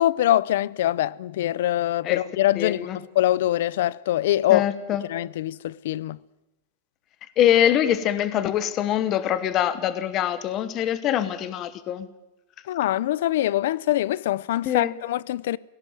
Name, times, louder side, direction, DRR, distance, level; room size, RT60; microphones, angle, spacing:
voice 1, 0.0-4.7 5.1-6.2 12.7-15.6, left 13 dB, 60° left, 0.6 m, -23 dB
voice 2, 2.6-3.0 4.5-5.0 7.4-12.1 14.6-14.9, left 10 dB, 25° left, 1.0 m, -23 dB
17.5 x 17.5 x 9.3 m
supercardioid pair, 180°, 0 cm